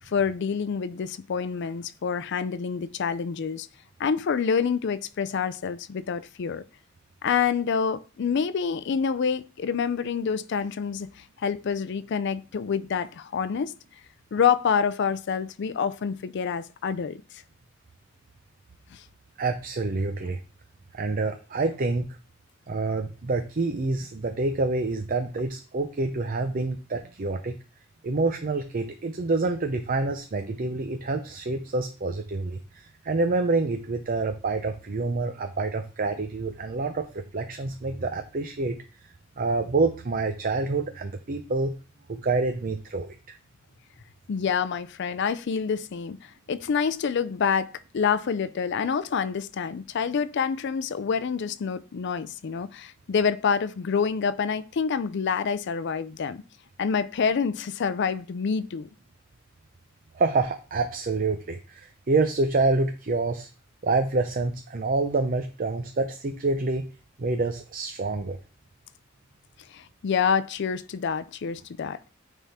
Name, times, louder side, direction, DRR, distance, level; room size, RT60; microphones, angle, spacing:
voice 1, 0.1-3.7 4.0-6.6 7.2-11.1 11.4-13.7 14.3-17.2 18.9-19.0 44.3-56.4 56.8-58.9 69.7-72.1, left 6 dB, 60° left, 0.4 m, -27 dB
voice 2, 19.4-20.4 20.9-22.2 22.7-27.6 28.0-38.8 39.4-41.7 42.1-43.2 60.1-63.5 63.8-66.9 67.2-68.4, right 3 dB, 45° right, 0.6 m, -27 dB
9.3 x 3.6 x 4.1 m
head